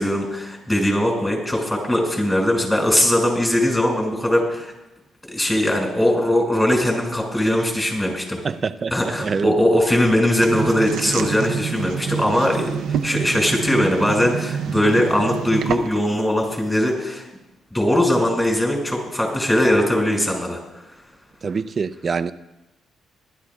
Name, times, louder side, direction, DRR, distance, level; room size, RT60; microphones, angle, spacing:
voice 1, 0.0-4.7 5.3-8.4 8.9-17.2 17.7-20.6, left 1 dB, 10° left, 6.2 m, -20 dB
voice 2, 8.4-9.5 21.4-22.3, right 5 dB, 40° right, 0.6 m, -25 dB
sound 1, 10.4-16.1, right 8 dB, 80° right, 0.6 m, -27 dB
24.5 x 12.5 x 2.5 m
cardioid pair, 90°, 0 cm